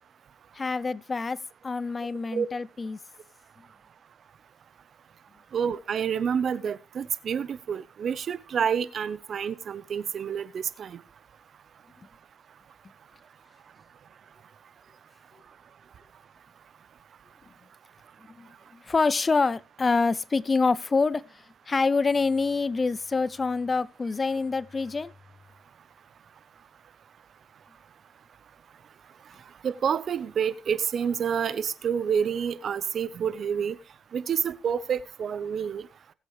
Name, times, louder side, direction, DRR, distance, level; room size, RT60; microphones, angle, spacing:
voice 1, 0.5-1.4 1.6-3.0 18.4-18.5 18.8-21.2 21.7-25.1, left 4 dB, 30° left, 0.5 m, -26 dB
voice 2, 5.5-11.0 29.6-33.7 34.1-35.8, right 7 dB, 55° right, 0.9 m, -28 dB
20.5 x 8.3 x 3.2 m
cardioid pair, 90°, 0 cm